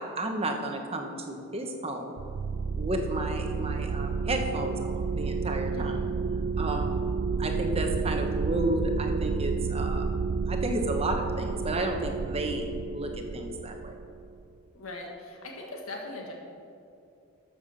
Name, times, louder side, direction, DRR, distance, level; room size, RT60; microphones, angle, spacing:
voice 1, 0.0-2.1 2.8-6.0 6.6-7.0 7.4-10.1 10.5-14.0, right 1 dB, 25° right, 3 dB, 1.1 m, -32 dB
sound 1, 2.2-14.4, right 5 dB, 45° right, 0.3 m, -30 dB
voice 2, 5.7-6.1 14.7-16.3, left 2 dB, 75° left, 0 dB, 1.7 m, -40 dB
13.0 x 7.0 x 6.5 m, 2.6 s
head